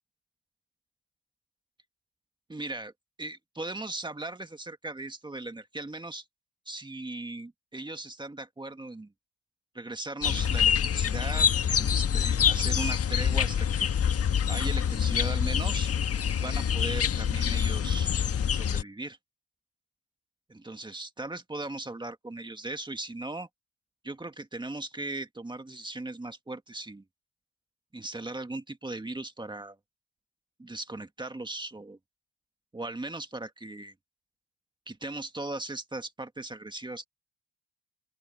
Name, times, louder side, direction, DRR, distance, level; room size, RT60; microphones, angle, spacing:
voice 1, 2.5-2.9 3.2-6.2 6.6-9.1 9.7-13.9 14.5-15.9 16.4-18.1 18.5-19.2 20.5-23.5 24.0-27.0 27.9-29.8 30.6-32.0 32.7-33.9 34.9-37.1, right 2 dB, 15° right, 1.8 m, -38 dB
sound 1, 10.2-18.8, left 8 dB, 50° left, 1.5 m, -26 dB
open air
cardioid pair, 90°, 30 cm